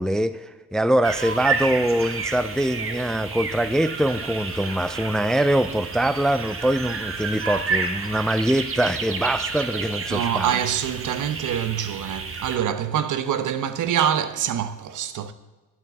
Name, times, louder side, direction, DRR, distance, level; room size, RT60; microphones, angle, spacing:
voice 1, 0.0-10.5, right 1 dB, ahead, 0.4 m, -23 dB
sound 1, 1.0-12.6, right 4 dB, 40° right, 1.4 m, -30 dB
voice 2, 10.1-15.3, right 9 dB, 65° right, 0.9 m, -25 dB
11.0 x 6.6 x 7.4 m
cardioid pair, 95°, 33 cm